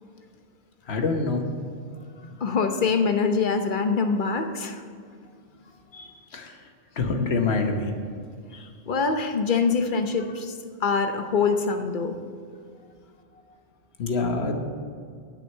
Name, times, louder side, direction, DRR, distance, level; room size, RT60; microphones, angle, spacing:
voice 1, 0.9-1.4 5.9-6.1 6.3-6.5 7.0-7.9 14.0-14.5, left 3 dB, 80° left, 5 dB, 1.3 m, -25 dB
voice 2, 2.4-4.8 8.9-10.5 10.8-12.1, left 5 dB, 55° left, 6 dB, 0.9 m, -24 dB
8.6 x 6.3 x 8.2 m, 2.2 s
omnidirectional pair, 1.1 m